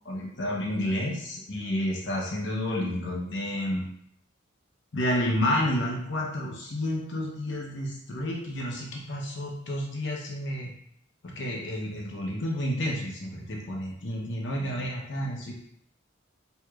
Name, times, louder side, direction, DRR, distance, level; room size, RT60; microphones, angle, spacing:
voice 1, 0.0-3.9 4.9-10.7 11.2-15.5, left 1 dB, 60° left, -1 dB, 0.8 m, -30 dB
4.7 x 2.9 x 2.4 m, 0.69 s
head